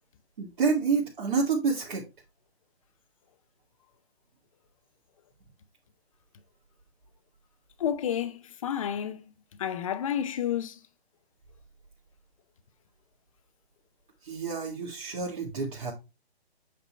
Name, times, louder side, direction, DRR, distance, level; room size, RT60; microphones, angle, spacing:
voice 1, 0.4-2.1 14.2-15.9, right 5 dB, 50° right, 1.9 m, -28 dB
voice 2, 7.8-9.3 9.6-10.8, left 9 dB, 30° left, 0.7 m, -30 dB
8.4 x 2.9 x 5.6 m
figure-of-eight pair, 140°, 33 cm